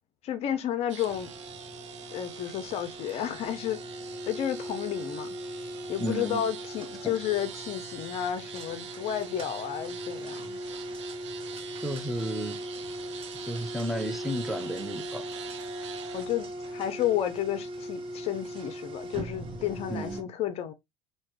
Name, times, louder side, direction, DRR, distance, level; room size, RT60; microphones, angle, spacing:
voice 1, 0.2-1.3 2.1-3.8 4.3-5.3 5.9-10.6 16.1-20.7, left 10 dB, 45° left, 0.6 m, -31 dB
sound 1, 0.9-16.2, right 8 dB, 75° right, 0.7 m, -45 dB
sound 2, 1.1-20.2, right 1 dB, 35° right, 1.5 m, -39 dB
voice 2, 6.0-6.4 7.0-7.1 11.8-12.6 13.5-15.2 19.9-20.3, equal, ahead, 0.8 m, -33 dB
5.7 x 2.8 x 3.1 m
figure-of-eight pair, 70°, 15 cm